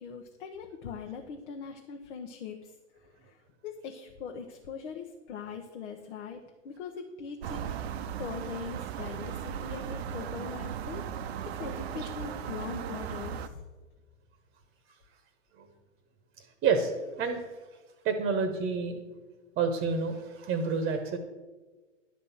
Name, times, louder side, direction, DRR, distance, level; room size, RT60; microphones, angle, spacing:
voice 1, 0.0-2.8 3.2-7.7 8.2-11.1 11.4-13.6, left 6 dB, 60° left, 3 dB, 1.1 m, -41 dB
sound 1, 7.4-13.5, right 9 dB, 60° right, 0.7 m, -37 dB
voice 2, 18.0-19.0 19.6-21.2, right 5 dB, 25° right, 7 dB, 1.1 m, -28 dB
11.0 x 4.1 x 7.1 m, 1.3 s
hypercardioid pair, 115°, 37 cm